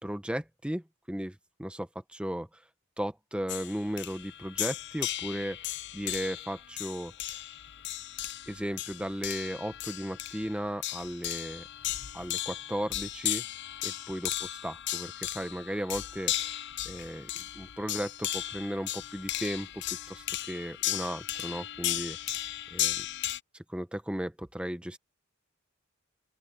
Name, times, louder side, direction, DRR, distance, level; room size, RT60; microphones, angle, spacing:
voice 1, 0.0-2.5 3.0-7.1 8.5-11.6 12.1-13.4 13.8-16.3 16.8-17.3 17.5-22.2 22.7-23.1 23.5-25.0, equal, 5° right, 1.0 m, -36 dB
sound 1, 3.5-23.4, left 13 dB, 60° left, 0.6 m, -36 dB
open air
head